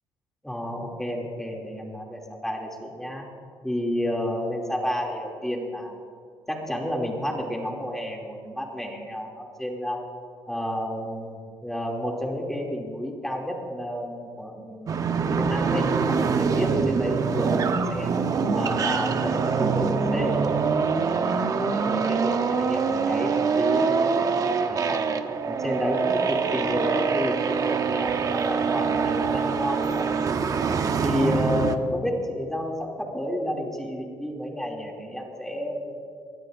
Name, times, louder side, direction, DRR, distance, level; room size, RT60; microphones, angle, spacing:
voice 1, 0.4-3.3 3.6-6.0 6.5-10.0 10.5-15.0 15.4-18.1 18.5-20.4 21.4-24.3 24.6-25.1 25.5-30.1 31.0-36.0, equal, 5° left, -1 dB, 2.7 m, -30 dB
sound 1, 14.9-31.8, right 5 dB, 45° right, 0.9 m, -24 dB
22.5 x 19.5 x 2.6 m, 2.2 s
cardioid pair, 100°, 9 cm